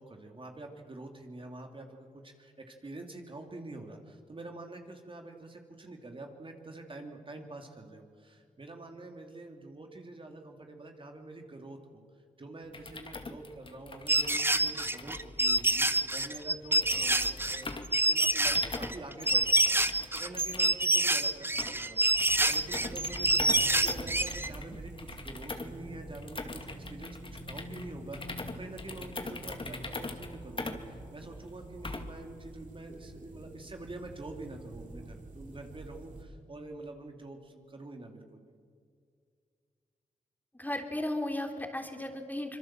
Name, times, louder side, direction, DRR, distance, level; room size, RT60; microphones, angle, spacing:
voice 1, 0.0-12.0 12.4-19.8 20.1-23.3 23.5-27.2 27.4-38.4, right 2 dB, 40° right, 3 dB, 2.8 m, -46 dB
sound 1, 12.6-32.3, left 3 dB, 40° left, 2.2 m, -43 dB
sound 2, 14.1-24.5, right 1 dB, 15° right, 1.1 m, -27 dB
sound 3, 22.5-36.2, right 2 dB, 70° right, 3.8 m, -47 dB
voice 2, 40.5-42.6, left 1 dB, 10° left, 4 dB, 3.3 m, -35 dB
25.0 x 22.0 x 7.5 m, 2.2 s
cardioid pair, 55°, 14 cm